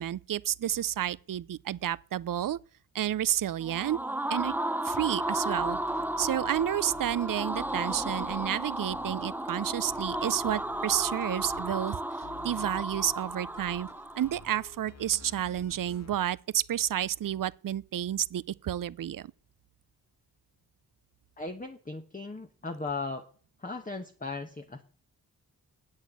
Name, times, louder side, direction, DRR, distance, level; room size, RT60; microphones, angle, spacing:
voice 1, 0.0-2.6 2.9-4.0 4.3-4.5 4.8-5.8 6.2-12.0 12.4-13.9 14.2-19.3, right 11 dB, 55° right, 0.5 m, -30 dB
sound 1, 3.6-14.5, right 1 dB, 5° right, 0.5 m, -34 dB
sound 2, 5.5-16.2, left 5 dB, 40° left, 1.1 m, -51 dB
voice 2, 21.4-23.2 23.6-24.8, left 3 dB, 20° left, 1.0 m, -37 dB
8.2 x 6.3 x 8.1 m
cardioid pair, 45°, 39 cm